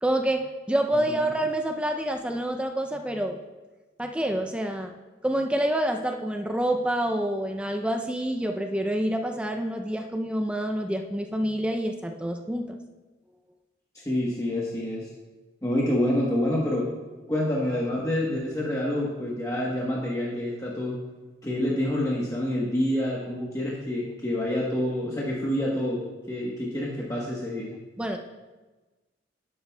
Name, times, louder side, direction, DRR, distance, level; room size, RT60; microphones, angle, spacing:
voice 1, 0.0-3.4 4.0-4.9 5.2-12.8 28.0-28.2, right 1 dB, 5° right, 4 dB, 0.4 m, -27 dB
voice 2, 13.9-15.1 15.6-16.9 17.3-20.9 21.4-26.0 26.3-27.7, left 1 dB, 15° left, -4 dB, 1.0 m, -27 dB
11.5 x 10.0 x 2.2 m, 1.2 s
head